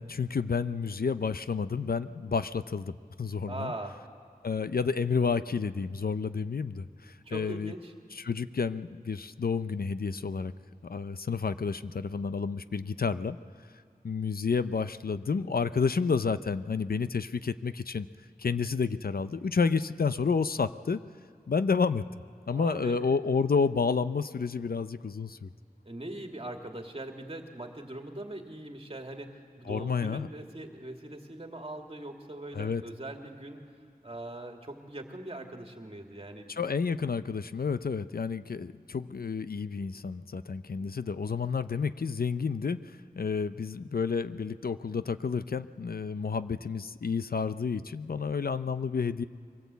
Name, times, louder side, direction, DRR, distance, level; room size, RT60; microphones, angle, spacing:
voice 1, 0.0-3.7 4.4-7.7 8.1-10.5 10.8-13.4 14.0-18.1 18.4-21.0 21.5-22.0 22.5-25.5 29.7-30.3 32.5-32.8 36.5-49.2, left 5 dB, 70° left, 12 dB, 0.6 m, -30 dB
voice 2, 3.5-4.0 7.3-7.9 22.5-23.1 25.8-33.6 34.0-36.6 40.8-40.9, right 1 dB, 35° right, 3 dB, 2.4 m, -41 dB
23.0 x 16.5 x 8.3 m, 2.4 s
wide cardioid pair, 65°, 16 cm